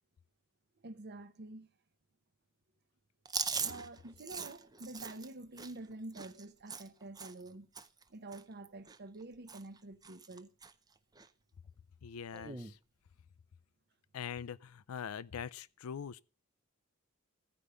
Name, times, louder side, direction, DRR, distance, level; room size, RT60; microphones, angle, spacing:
voice 1, 0.8-1.7 3.6-7.7 8.1-10.5, right 2 dB, 50° right, 0.8 m, -48 dB
Chewing mastication, 3.2-7.5 7.7-8.0 8.3-9.2 9.5-9.8 10.0-10.7 11.1-11.3 12.3-12.7, right 5 dB, 20° right, 0.6 m, -41 dB
voice 2, 12.0-12.8 14.1-16.2, left 7 dB, 85° left, 0.4 m, -43 dB
14.5 x 5.0 x 6.7 m
head